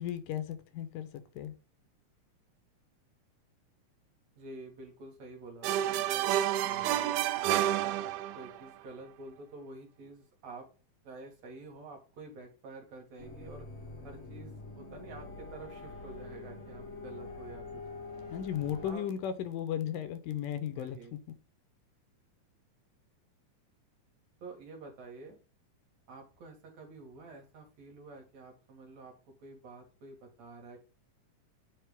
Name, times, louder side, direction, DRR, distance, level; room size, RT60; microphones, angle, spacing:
voice 1, 0.0-1.5 18.3-21.2, left 10 dB, 80° left, 2.2 m, -35 dB
voice 2, 4.4-6.2 6.6-10.7 11.0-13.7 14.0-18.0 18.8-19.0 20.8-21.1 24.4-25.4 26.1-29.1 29.4-30.8, right 3 dB, 60° right, 2.4 m, -49 dB
sound 1, 5.6-8.6, right 12 dB, 80° right, 1.9 m, -29 dB
sound 2, 13.2-18.9, left 3 dB, 65° left, 0.6 m, -45 dB
9.1 x 3.3 x 3.5 m
omnidirectional pair, 3.9 m